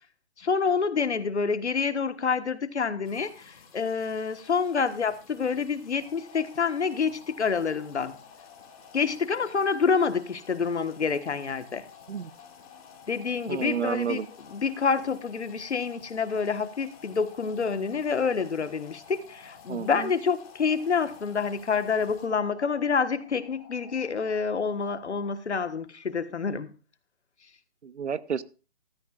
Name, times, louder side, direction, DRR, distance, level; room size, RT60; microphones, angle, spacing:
voice 1, 0.4-8.2 8.9-11.8 13.1-14.2 14.5-26.7, left 5 dB, 75° left, 12 dB, 1.4 m, -27 dB
sound 1, 3.0-22.2, left 5 dB, 30° left, 3.7 m, -55 dB
sound 2, 6.0-25.3, left 7 dB, 10° left, 0.6 m, -52 dB
voice 2, 13.5-14.3 19.7-20.1 27.8-28.4, right 7 dB, 85° right, 18 dB, 0.8 m, -30 dB
16.0 x 13.0 x 2.4 m, 0.34 s
hypercardioid pair, 150°, 34 cm